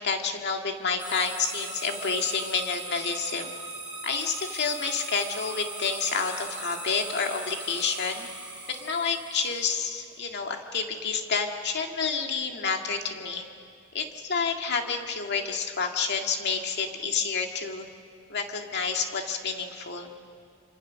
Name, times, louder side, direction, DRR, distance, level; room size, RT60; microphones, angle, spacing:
voice 1, 0.0-3.6 4.0-8.3 8.7-13.5 13.9-17.9 18.3-20.1, left 5 dB, 50° left, 3 dB, 2.0 m, -29 dB
sound 1, 1.0-9.9, right 2 dB, 5° right, 6.0 m, -39 dB
26.5 x 26.0 x 6.3 m, 2.4 s
head